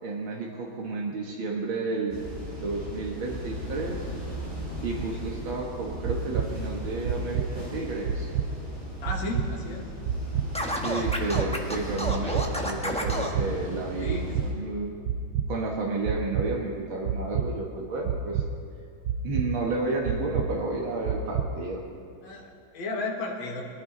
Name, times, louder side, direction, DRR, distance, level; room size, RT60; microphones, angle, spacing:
voice 1, 0.0-2.2 2.6-4.1 4.8-8.3 10.7-14.2 14.5-14.9 15.5-18.4 19.2-21.8, right 3 dB, 85° right, -1 dB, 2.2 m, -31 dB
sound 1, 2.1-14.5, equal, 25° right, 4.6 m, -37 dB
sound 2, 6.0-6.5 7.0-7.5 8.0-8.5 9.0-9.5 10.0-10.5 11.0-11.5 12.0-12.5 13.0-13.5 14.0-14.5 15.0-15.5 16.0-16.5 17.0-17.5 18.0-18.5 19.0-19.5 20.0-20.5 21.0-21.5, right 10 dB, 70° right, 1.3 m, -27 dB
voice 2, 9.0-9.9 14.0-14.4 22.2-23.6, left 2 dB, 75° left, -2 dB, 2.2 m, -34 dB
Scratching (performance technique), 10.5-13.3, equal, 5° left, 0.9 m, -30 dB
21.0 x 14.0 x 3.8 m, 2.4 s
omnidirectional pair, 2.2 m